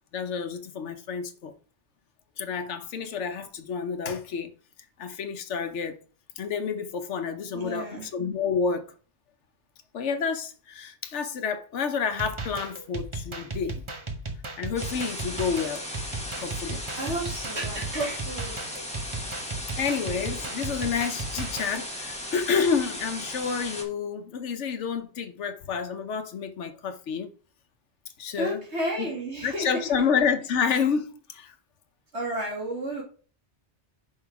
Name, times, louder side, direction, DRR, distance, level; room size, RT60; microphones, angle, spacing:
voice 1, 0.1-1.5 2.4-4.5 5.0-6.0 6.4-8.9 9.9-13.8 14.6-15.9 16.4-16.8 19.8-27.3 28.2-28.6 29.0-29.1 29.4-31.5, left 6 dB, 85° left, 1.1 m, -29 dB
voice 2, 7.5-8.1 17.0-18.6 28.4-29.7 32.1-33.0, right 1 dB, 70° right, 2.6 m, -32 dB
sound 1, 12.1-21.8, right 3 dB, 30° right, 0.8 m, -35 dB
sound 2, 14.8-23.8, left 1 dB, 5° left, 1.5 m, -37 dB
5.6 x 5.6 x 4.7 m
omnidirectional pair, 1.2 m